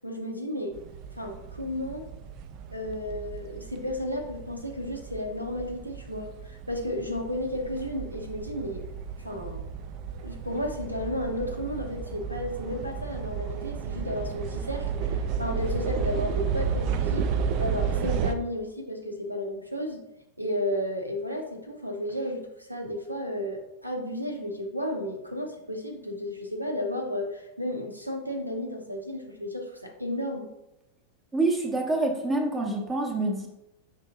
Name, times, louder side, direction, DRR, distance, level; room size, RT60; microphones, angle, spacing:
voice 1, 0.0-0.8 1.2-2.0 2.7-8.8 9.2-9.7 10.1-17.3 17.6-20.1 20.4-30.5, left 1 dB, 90° right, 2 dB, 0.7 m, -33 dB
sound 1, 0.7-18.3, right 6 dB, 40° right, 0.3 m, -33 dB
voice 2, 31.3-33.5, right 2 dB, 15° right, 1 dB, 0.7 m, -26 dB
5.6 x 2.7 x 3.5 m, 0.89 s
figure-of-eight pair, 90°, 0 cm